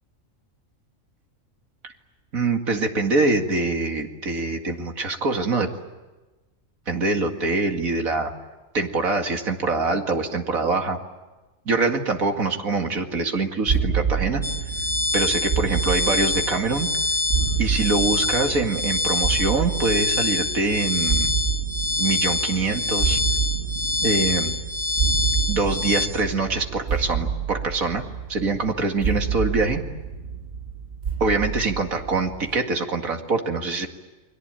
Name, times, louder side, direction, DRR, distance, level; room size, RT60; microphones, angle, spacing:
voice 1, 2.3-5.7 6.9-8.3 8.7-11.0 11.7-14.4 15.1-16.9 17.6-21.3 22.0-23.2 24.0-24.5 25.5-29.8 31.2-33.9, right 3 dB, 85° right, 4 dB, 2.6 m, -24 dB
sound 1, 13.7-32.6, right 7 dB, 55° right, 1.6 m, -28 dB
sound 2, 14.4-26.1, left 3 dB, 15° left, 3.5 m, -26 dB
29.5 x 22.0 x 9.0 m, 1.2 s
omnidirectional pair, 1.4 m